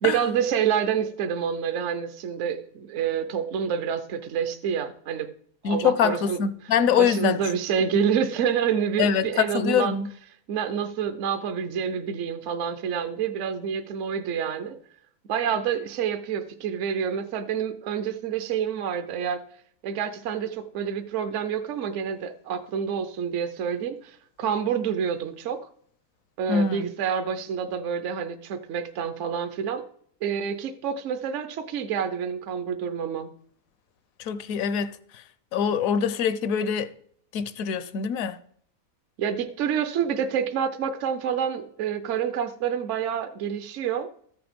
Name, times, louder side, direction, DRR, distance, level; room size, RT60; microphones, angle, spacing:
voice 1, 0.0-5.3 5.6-6.4 7.0-9.9 10.5-14.8 15.3-19.4 19.8-25.6 26.4-29.8 30.2-33.3 39.2-44.1, right 7 dB, 65° right, 0.9 m, -28 dB
voice 2, 5.6-7.4 9.0-10.1 26.5-26.9 34.2-35.2 35.5-36.9 37.3-38.4, left 7 dB, 70° left, 1.1 m, -24 dB
13.5 x 6.9 x 5.1 m
omnidirectional pair, 1.5 m